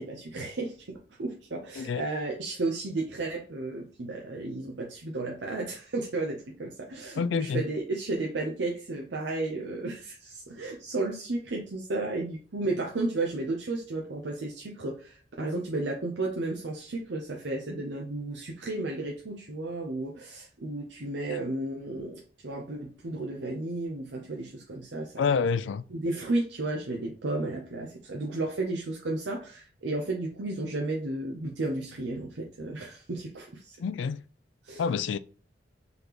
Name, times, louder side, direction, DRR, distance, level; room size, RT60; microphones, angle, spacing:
voice 1, 0.0-25.3 25.9-33.8 34.6-35.0, right 2 dB, 70° right, 0.7 m, -33 dB
voice 2, 7.2-7.6 21.3-21.4 25.2-25.8 33.8-34.2 34.8-35.2, left 6 dB, 80° left, 0.3 m, -28 dB
3.9 x 3.4 x 2.9 m
head